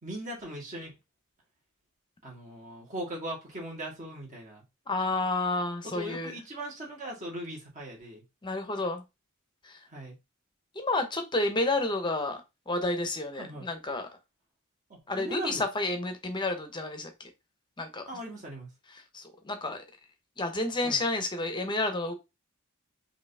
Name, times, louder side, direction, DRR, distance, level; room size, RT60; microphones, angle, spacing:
voice 1, 0.0-0.9 2.2-4.6 5.8-8.2 9.9-10.2 13.4-13.7 14.9-15.6 18.1-18.7 20.8-21.0, right 1 dB, 35° right, 1.9 m, -39 dB
voice 2, 4.9-6.3 8.4-9.0 9.6-9.8 10.7-12.4 12.7-14.1 15.1-17.1 17.8-18.0 19.1-19.8 20.4-22.1, left 2 dB, 20° left, 0.8 m, -30 dB
5.0 x 2.8 x 3.4 m
head